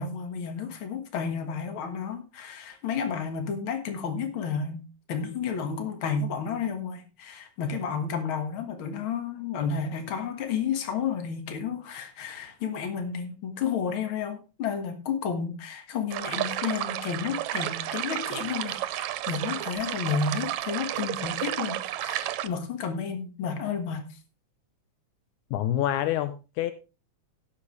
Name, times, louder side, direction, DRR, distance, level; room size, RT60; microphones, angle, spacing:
voice 1, 0.0-4.8 5.1-24.1, left 6 dB, 50° left, 2.1 m, -31 dB
sound 1, 16.1-22.5, right 14 dB, 75° right, 1.9 m, -32 dB
voice 2, 25.5-26.7, left 12 dB, 80° left, 2.0 m, -27 dB
17.5 x 6.7 x 3.2 m
omnidirectional pair, 3.5 m